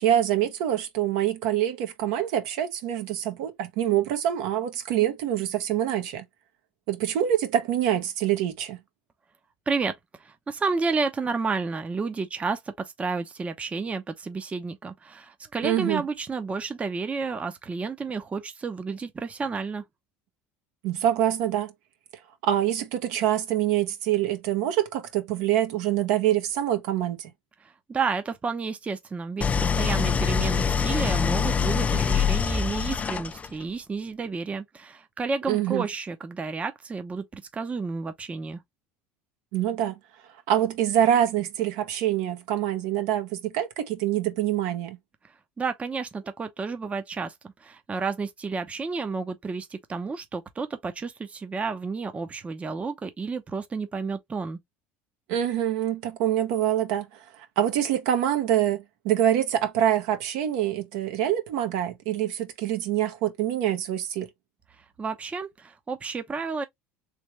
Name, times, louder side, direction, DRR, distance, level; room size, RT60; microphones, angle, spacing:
voice 1, 0.0-6.2 6.9-8.8 15.6-16.1 20.8-21.7 22.4-27.3 35.5-35.9 39.5-40.0 40.5-45.0 55.3-64.3, right 11 dB, 75° right, 1.1 m, -25 dB
voice 2, 9.7-19.8 27.6-38.6 45.6-54.6 65.0-66.6, right 4 dB, 20° right, 0.7 m, -31 dB
Idling, 29.4-33.6, left 6 dB, 20° left, 0.3 m, -24 dB
3.3 x 3.2 x 3.1 m
supercardioid pair, 95°, 6 cm